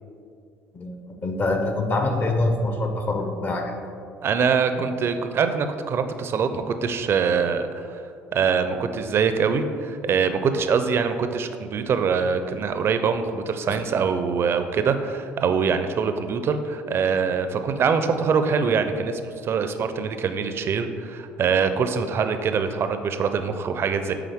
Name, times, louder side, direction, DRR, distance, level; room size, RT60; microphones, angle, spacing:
voice 1, 0.7-3.8 13.7-13.8, left 2 dB, 35° left, 4 dB, 0.9 m, -25 dB
voice 2, 4.2-8.0 8.3-24.1, right 6 dB, 45° right, 9 dB, 0.5 m, -24 dB
8.5 x 3.6 x 3.5 m, 2.4 s
supercardioid pair, 75°, 5 cm